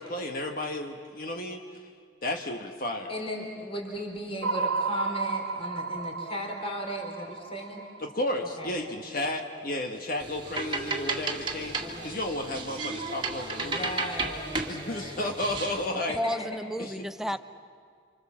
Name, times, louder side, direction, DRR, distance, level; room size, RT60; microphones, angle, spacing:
voice 1, 0.0-1.9 2.2-3.1 8.0-13.9 14.7-16.2 16.8-16.9, left 1 dB, 45° left, 3 dB, 1.4 m, -33 dB
voice 2, 3.1-7.8 8.6-8.7 11.8-12.2 13.6-15.2 16.1-16.5, equal, 30° left, 1 dB, 4.0 m, -37 dB
sound 1, 4.4-8.7, right 4 dB, 80° right, 0.8 m, -33 dB
sound 2, 10.2-15.9, right 3 dB, 25° right, 1.9 m, -34 dB
voice 3, 15.9-17.4, equal, ahead, 10 dB, 0.6 m, -32 dB
29.5 x 26.0 x 7.3 m, 2.2 s
head